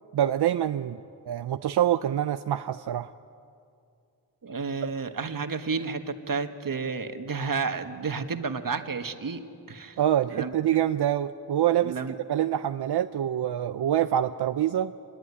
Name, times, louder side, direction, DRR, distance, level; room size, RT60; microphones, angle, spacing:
voice 1, 0.1-3.1 10.0-12.0 12.3-14.9, right 11 dB, 90° right, 10 dB, 0.6 m, -25 dB
voice 2, 4.4-10.0 10.3-10.8 11.8-12.1, right 4 dB, 60° right, 7 dB, 1.6 m, -31 dB
25.0 x 21.0 x 9.7 m, 2.4 s
wide cardioid pair, 75°, 38 cm